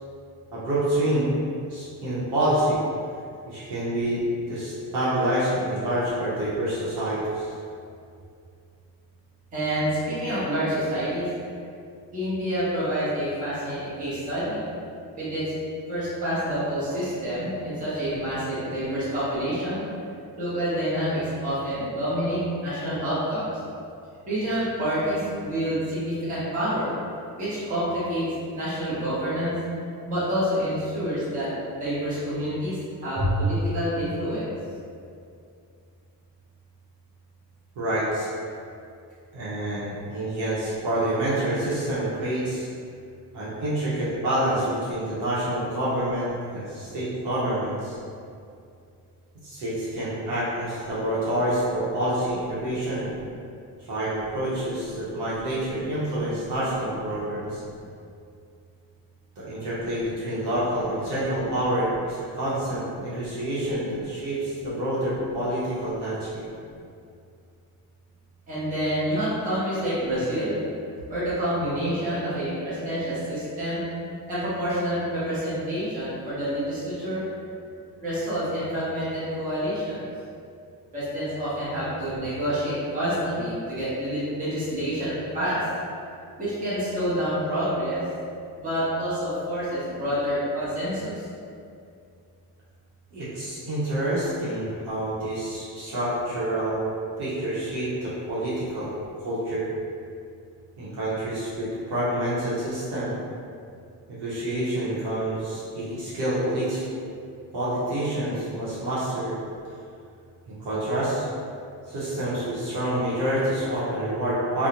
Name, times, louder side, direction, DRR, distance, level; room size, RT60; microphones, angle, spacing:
voice 1, 0.5-1.3 1.7-2.8 3.5-7.5 33.2-33.4 37.8-38.3 39.3-42.7 43.3-48.0 49.4-53.1 53.9-57.6 59.4-66.5 93.1-96.9 97.2-98.9 99.2-99.7 100.8-103.1 104.1-106.8 107.5-109.3 110.5-111.3 111.9-114.7, right 1 dB, 75° right, -9 dB, 0.8 m, -27 dB
voice 2, 9.5-11.3 12.1-14.6 15.1-15.5 15.9-19.8 20.4-23.5 24.3-26.9 27.4-28.3 28.5-29.5 30.0-32.8 33.0-34.5 68.5-70.6 71.1-73.8 74.3-77.2 78.0-80.0 80.9-85.6 86.4-88.0 88.6-91.1, equal, 20° right, -12 dB, 0.6 m, -28 dB
2.4 x 2.0 x 2.8 m, 2.4 s
cardioid pair, 175°, 42 cm